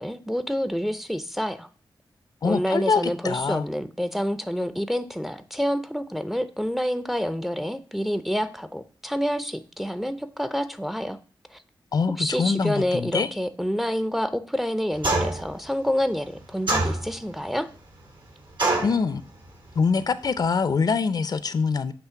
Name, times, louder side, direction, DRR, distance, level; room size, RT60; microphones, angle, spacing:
voice 1, 0.0-1.7 2.4-11.2 11.5-11.6 12.2-17.7, equal, ahead, 0.5 m, -28 dB
voice 2, 2.4-3.7 11.9-13.3 18.8-19.2 19.8-21.9, left 5 dB, 55° left, 0.5 m, -24 dB
sound 1, 15.0-15.5 16.7-17.3 18.6-19.0, right 2 dB, 80° right, 2.0 m, -24 dB
8.1 x 3.2 x 5.7 m
wide cardioid pair, 125°, 8 cm